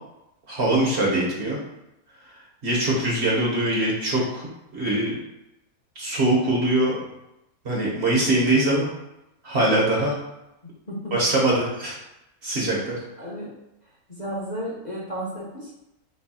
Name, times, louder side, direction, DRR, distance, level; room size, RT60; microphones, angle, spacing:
voice 1, 0.5-1.6 2.6-5.2 6.0-7.0 7.6-8.9 9.4-10.1 11.1-12.0 12.4-13.0, right 1 dB, 50° right, -3 dB, 1.2 m, -22 dB
voice 2, 13.2-13.5 14.1-15.8, equal, 35° left, -5 dB, 1.0 m, -33 dB
3.4 x 3.3 x 4.7 m, 0.90 s
omnidirectional pair, 1.6 m